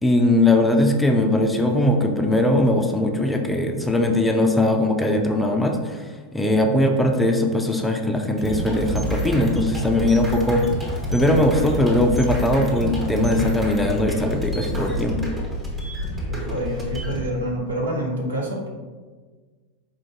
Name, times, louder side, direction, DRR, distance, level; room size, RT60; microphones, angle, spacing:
voice 1, 0.0-15.2, left 1 dB, 5° left, 3 dB, 0.4 m, -20 dB
sound 1, 8.4-17.3, equal, 15° right, 1.1 m, -28 dB
voice 2, 16.3-18.7, right 1 dB, 75° right, -1 dB, 0.9 m, -27 dB
4.4 x 2.5 x 3.7 m, 1.4 s
figure-of-eight pair, 85°, 0 cm